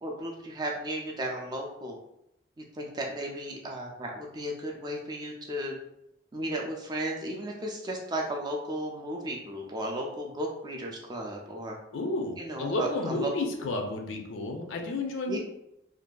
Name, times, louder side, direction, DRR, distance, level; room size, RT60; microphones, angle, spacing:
voice 1, 0.0-2.0 2.6-5.8 6.3-11.8 12.4-13.3 15.3-15.4, right 1 dB, 20° right, 0 dB, 0.3 m, -34 dB
voice 2, 11.9-15.4, left 2 dB, 75° left, 3 dB, 0.4 m, -31 dB
2.6 x 2.3 x 2.2 m, 0.83 s
head